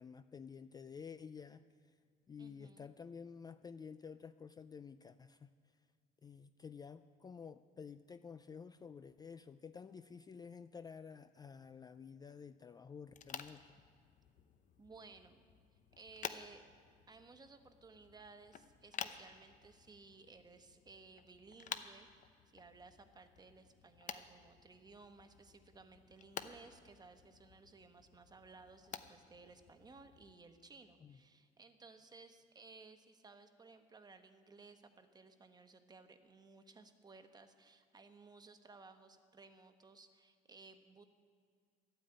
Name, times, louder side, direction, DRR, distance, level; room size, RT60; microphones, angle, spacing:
voice 1, 0.0-1.6 2.3-5.5 6.2-13.7 31.0-31.2, left 6 dB, 25° left, 12 dB, 0.3 m, -51 dB
voice 2, 2.4-2.9 14.8-15.4 15.9-16.6 17.1-41.0, right 4 dB, 25° right, 8 dB, 1.1 m, -59 dB
sound 1, 13.1-30.3, left 8 dB, 50° left, 0.8 m, -52 dB
12.5 x 8.9 x 8.8 m, 2.1 s
cardioid pair, 110°, 17 cm